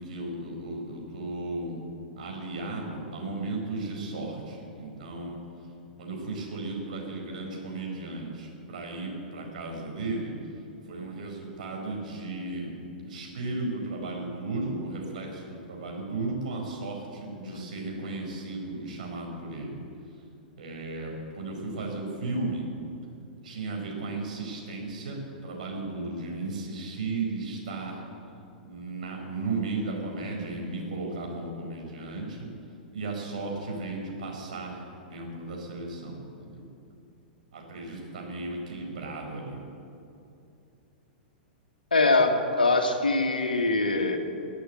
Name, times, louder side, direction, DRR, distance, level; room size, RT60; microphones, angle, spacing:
voice 1, 0.0-1.8 2.2-5.4 6.0-10.3 10.8-12.7 13.0-19.8 20.6-22.6 23.4-28.0 28.6-32.5 32.9-36.7 37.5-39.6, right 2 dB, 55° right, 0 dB, 4.8 m, -35 dB
voice 2, 17.2-17.7 41.9-44.2, left 2 dB, 75° left, 4 dB, 1.9 m, -24 dB
21.5 x 8.4 x 7.9 m, 2.6 s
figure-of-eight pair, 100°, 5 cm